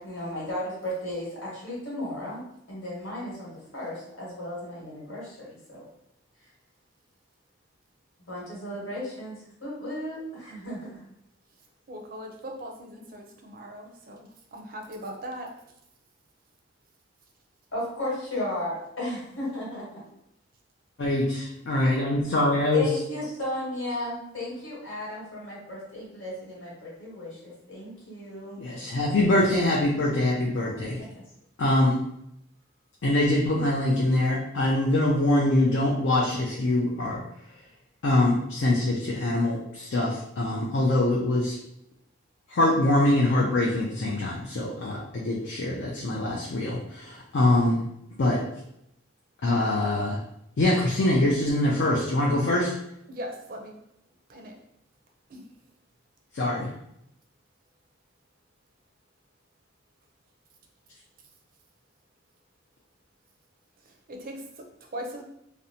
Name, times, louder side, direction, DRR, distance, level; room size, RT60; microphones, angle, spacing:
voice 1, 0.0-5.9 6.4-6.5 8.3-11.0 17.7-20.0 22.7-28.6 31.0-31.2, left 1 dB, 75° left, -6 dB, 1.3 m, -35 dB
voice 2, 11.9-15.7 53.1-53.8 54.3-54.6 55.3-55.4 63.8-65.2, equal, 45° right, 2 dB, 0.4 m, -40 dB
voice 3, 21.0-22.9 28.6-31.0 31.6-32.0 33.0-37.2 38.0-41.6 42.5-47.9 48.2-48.4 49.4-50.2 50.6-52.7 56.3-56.7, left 1 dB, 60° left, -3 dB, 0.4 m, -24 dB
2.6 x 2.1 x 2.7 m, 0.79 s
head